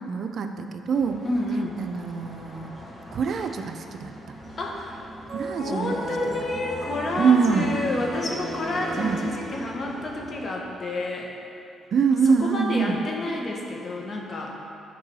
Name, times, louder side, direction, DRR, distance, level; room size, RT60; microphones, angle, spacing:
voice 1, 0.0-1.2 1.8-2.7 3.1-4.1 5.3-5.9 7.2-7.7 9.0-9.2 11.9-13.0, right 5 dB, 60° right, 7 dB, 0.5 m, -24 dB
sound 1, 0.9-10.5, equal, 15° left, 1.5 m, -43 dB
voice 2, 1.2-1.8 4.6-5.0 5.6-11.3 12.2-14.5, left 2 dB, 45° left, -1 dB, 1.5 m, -29 dB
sound 2, 5.3-10.0, right 1 dB, 45° right, 2.0 m, -35 dB
9.5 x 4.8 x 6.2 m, 2.8 s
cardioid pair, 90°, 0 cm